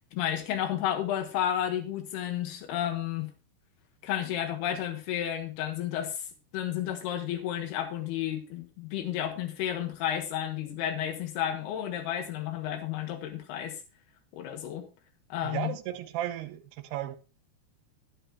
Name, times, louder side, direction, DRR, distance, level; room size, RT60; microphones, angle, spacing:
voice 1, 0.1-3.3 4.0-6.3 6.5-13.8 14.3-14.9 15.3-15.7, left 10 dB, 80° left, 3.3 m, -32 dB
voice 2, 15.4-17.2, right 12 dB, 90° right, 2.8 m, -35 dB
11.0 x 10.5 x 2.9 m
omnidirectional pair, 4.6 m